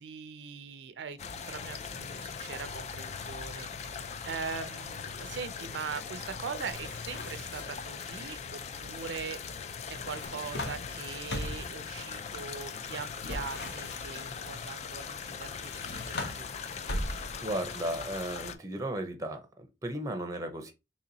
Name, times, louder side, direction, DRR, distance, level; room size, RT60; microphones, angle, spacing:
voice 1, 0.0-9.4 9.9-16.5, right 6 dB, 80° right, 0.4 m, -41 dB
sound 1, 1.2-18.5, left 6 dB, 40° left, 0.4 m, -40 dB
sound 2, 6.7-7.9 9.9-11.8 13.2-14.4 15.5-17.5, left 1 dB, 70° left, 0.9 m, -39 dB
voice 2, 17.1-20.7, right 1 dB, 20° right, 0.6 m, -35 dB
3.0 x 2.9 x 3.9 m
head